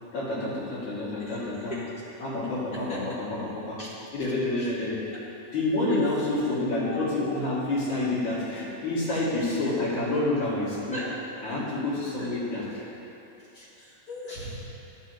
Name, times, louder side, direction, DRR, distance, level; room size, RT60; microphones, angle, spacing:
voice 1, 0.1-1.8 2.2-3.8 4.1-5.0 5.5-11.0 11.4-12.8, left 2 dB, 65° left, -9 dB, 3.3 m, -28 dB
voice 2, 1.2-1.9 2.7-3.2 3.8-3.9 4.6-4.7 5.9-6.2 6.8-7.7 9.1-9.4 10.9-11.1 12.2-12.4 13.4-14.6, left 1 dB, 50° left, -8 dB, 1.2 m, -39 dB
12.5 x 6.1 x 3.1 m, 3.0 s
omnidirectional pair, 3.5 m